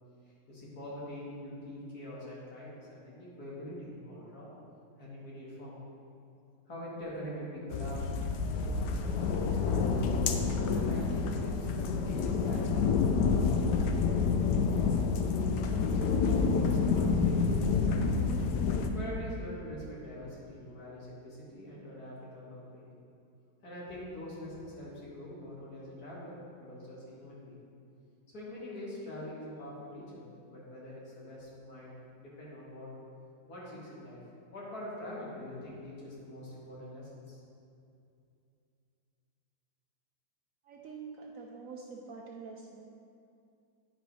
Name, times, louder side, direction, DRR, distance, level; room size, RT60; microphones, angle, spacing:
voice 1, 0.5-4.5 5.0-5.8 6.7-8.0 8.5-11.7 12.0-14.9 15.8-18.1 18.9-22.9 23.6-27.6 28.3-30.2 30.5-31.9 32.2-32.9 33.5-34.2 34.5-37.4, left 1 dB, 60° left, -7 dB, 2.6 m, -44 dB
sound 1, 7.7-18.9, left 5 dB, 80° left, 1.2 m, -28 dB
voice 2, 40.7-42.8, right 5 dB, 65° right, 0 dB, 0.9 m, -46 dB
10.0 x 4.9 x 4.8 m, 2.6 s
omnidirectional pair, 1.8 m